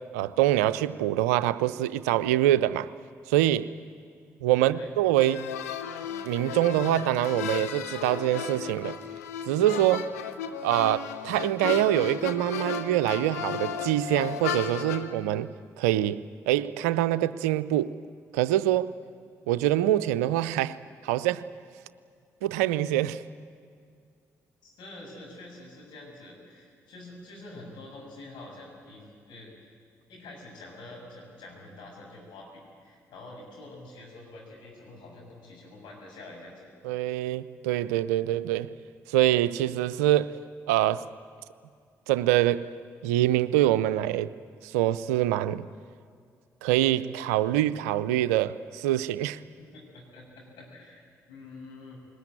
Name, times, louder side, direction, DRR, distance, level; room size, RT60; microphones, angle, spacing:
voice 1, 0.0-2.9 3.3-3.7 4.4-5.5 6.2-9.0 9.5-10.1 10.6-15.5 15.8-17.9 18.3-18.9 19.5-20.8 21.0-21.5 22.4-23.2 36.8-38.7 39.1-40.4 40.7-41.0 42.1-42.7 43.0-44.3 44.6-45.6 46.6-49.4, right 13 dB, 80° right, 0.5 m, -25 dB
voice 2, 4.6-4.9 24.6-29.7 30.1-36.7 49.6-52.0, left 2 dB, 70° left, 7.1 m, -47 dB
sound 1, 5.2-15.1, left 8 dB, 85° left, 0.8 m, -34 dB
22.0 x 20.0 x 9.1 m
hypercardioid pair, 40°, 8 cm